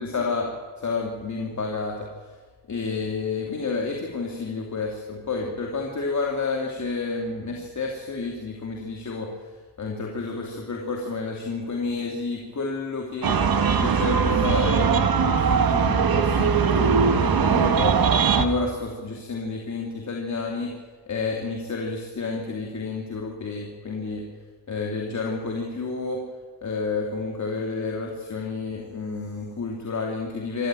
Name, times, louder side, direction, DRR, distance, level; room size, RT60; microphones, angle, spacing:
voice 1, 0.0-2.1 2.7-9.3 9.8-13.4 13.7-18.0 18.3-20.7 21.1-24.2 24.7-26.2 26.6-30.7, left 4 dB, 40° left, 0 dB, 2.7 m, -30 dB
sound 1, 13.2-18.4, right 6 dB, 55° right, 1.7 m, -20 dB
25.5 x 14.0 x 9.1 m, 1.4 s
wide cardioid pair, 155°, 43 cm